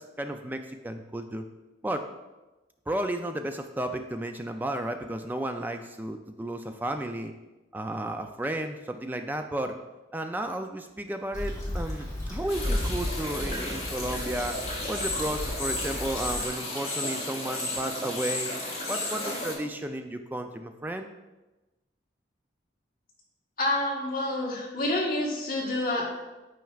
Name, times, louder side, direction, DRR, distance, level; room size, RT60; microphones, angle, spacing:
voice 1, 0.0-1.4 1.8-2.1 2.9-7.3 7.7-9.8 10.1-14.6 14.9-18.5 18.9-21.1, right 1 dB, 10° right, 6 dB, 0.3 m, -33 dB
Stream / Traffic noise roadway noise / Trickle dribble, 11.3-16.5, left 1 dB, 15° left, 1.3 m, -34 dB
sound 1, 12.5-19.5, left 2 dB, 35° left, 1.5 m, -33 dB
voice 2, 23.6-26.2, left 1 dB, 50° left, -4 dB, 1.4 m, -28 dB
9.2 x 4.5 x 2.4 m, 1.1 s
head